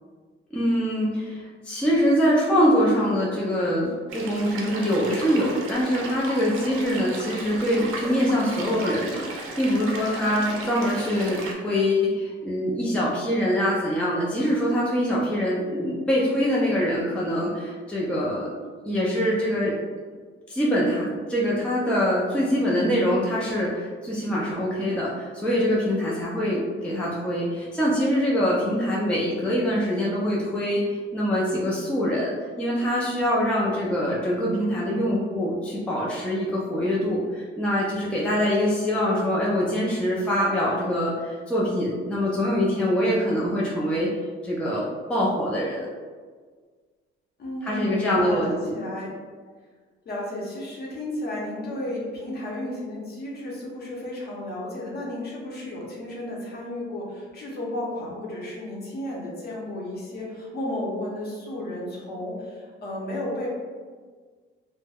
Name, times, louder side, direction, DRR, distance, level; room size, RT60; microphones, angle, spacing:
voice 1, 0.5-19.7 20.5-44.1 44.4-44.8 45.1-45.9 47.6-48.7, equal, 5° left, -5 dB, 0.4 m, -24 dB
sound 1, 4.1-11.6, right 3 dB, 80° right, 0.5 m, -36 dB
voice 2, 10.1-10.5 22.2-22.9 47.4-49.1 50.0-63.5, left 1 dB, 50° left, -4 dB, 0.8 m, -33 dB
2.2 x 2.1 x 3.3 m, 1.5 s
cardioid pair, 130°, 21 cm